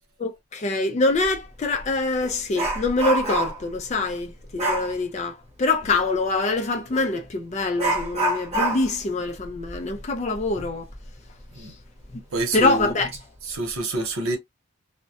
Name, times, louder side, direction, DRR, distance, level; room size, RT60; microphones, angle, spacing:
voice 1, 0.2-10.9 12.1-12.2 12.5-13.1, left 3 dB, 30° left, 0.3 m, -24 dB
Dog, 1.2-1.4 1.8-3.7 4.6-4.9 6.9-7.1 7.8-11.1 11.4-11.5 12.0-12.1 12.8-13.2 13.5-13.8, right 2 dB, 30° right, 0.8 m, -27 dB
voice 2, 12.3-12.9 13.5-14.4, right 2 dB, 85° right, 0.9 m, -27 dB
2.2 x 2.0 x 2.7 m
head